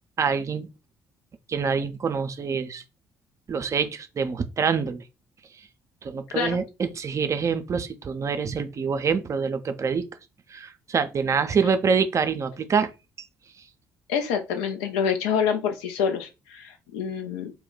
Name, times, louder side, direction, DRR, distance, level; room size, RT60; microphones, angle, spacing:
voice 1, 0.2-0.7 1.5-2.8 3.5-5.0 5.6-5.7 6.0-10.1 10.5-12.9 13.2-13.3, right 6 dB, 35° right, 0.4 m, -26 dB
voice 2, 14.1-17.5, left 7 dB, 75° left, 0.5 m, -27 dB
2.2 x 2.1 x 3.8 m
hypercardioid pair, 50°, 9 cm